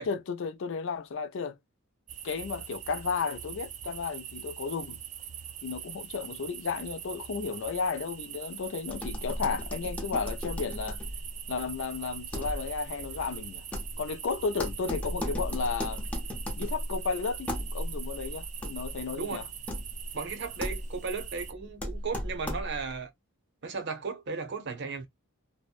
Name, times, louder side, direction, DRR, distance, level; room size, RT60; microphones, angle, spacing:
voice 1, 0.0-1.6 2.2-5.0 5.6-11.0 11.5-13.6 14.0-16.0 16.6-19.5, left 5 dB, 60° left, 0.4 m, -33 dB
sound 1, 2.1-21.5, right 9 dB, 35° right, 0.3 m, -43 dB
sound 2, 8.8-23.0, equal, 5° left, 0.7 m, -37 dB
voice 2, 20.1-23.1 23.6-25.1, right 4 dB, 55° right, 0.7 m, -35 dB
2.7 x 2.1 x 2.3 m
head